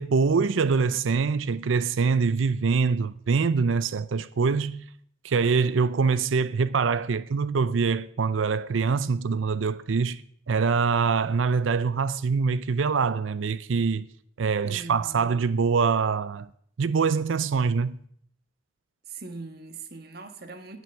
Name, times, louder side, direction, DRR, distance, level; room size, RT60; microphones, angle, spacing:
voice 1, 0.0-4.9 5.2-14.1 14.4-16.5 16.8-18.0, right 5 dB, 85° right, 0.5 m, -24 dB
voice 2, 14.6-15.4 19.1-20.8, right 3 dB, 50° right, 1.5 m, -41 dB
18.5 x 6.2 x 7.0 m
head